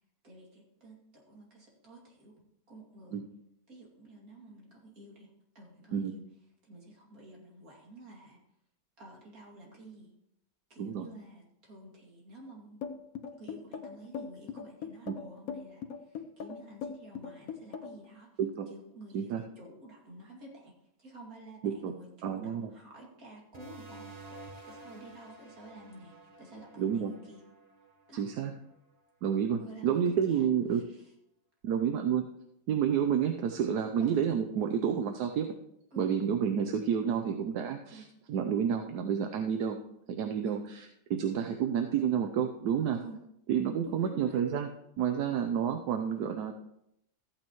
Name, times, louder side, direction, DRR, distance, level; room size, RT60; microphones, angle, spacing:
voice 1, 0.2-2.4 2.7-3.2 3.7-5.3 5.5-6.2 6.6-8.4 9.0-10.1 10.7-12.8 13.4-18.3 18.7-20.7 21.0-27.4 28.1-28.3 29.6-31.1 34.0-34.2 35.9-36.1 37.9-38.1 40.4-40.6 42.9-43.2 43.8-44.4, right 1 dB, 60° right, -2 dB, 2.9 m, -51 dB
sound 1, 12.8-18.1, left 6 dB, 65° left, 1.2 m, -40 dB
voice 2, 22.2-22.7 26.8-27.1 28.1-28.5 29.2-30.8 31.6-32.2 32.7-35.5 36.0-38.0 38.3-39.8 40.2-40.8 41.1-43.0 43.5-44.7 45.0-46.5, right 8 dB, 80° right, 5 dB, 1.2 m, -29 dB
sound 2, 23.5-28.7, right 2 dB, 25° right, 1.2 m, -51 dB
14.5 x 8.9 x 3.0 m, 0.79 s
omnidirectional pair, 1.7 m